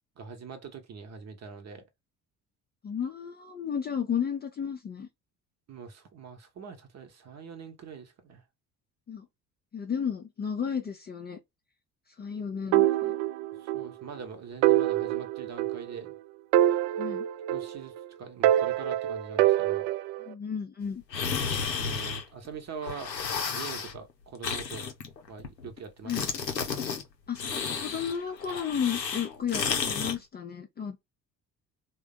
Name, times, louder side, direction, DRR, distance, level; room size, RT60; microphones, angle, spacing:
voice 1, 0.2-1.9 5.7-8.4 13.6-16.2 17.5-19.9 21.8-23.1 23.5-24.9 25.3-26.2, right 6 dB, 35° right, 0.9 m, -43 dB
voice 2, 2.8-5.1 9.1-9.3 9.7-11.4 12.2-13.1 17.0-17.3 20.3-21.0 26.0-26.3 27.3-27.4 27.8-31.0, left 7 dB, 20° left, 0.5 m, -33 dB
sound 1, 12.7-13.9 14.2-14.3 14.6-16.1 16.5-18.0 18.4-20.3, right 13 dB, 50° right, 0.5 m, -25 dB
sound 2, 21.1-22.5 22.8-24.0 24.4-25.8 26.1-27.0 27.3-30.2, left 6 dB, 85° left, 0.6 m, -32 dB
3.4 x 2.3 x 3.6 m
figure-of-eight pair, 50°, 49 cm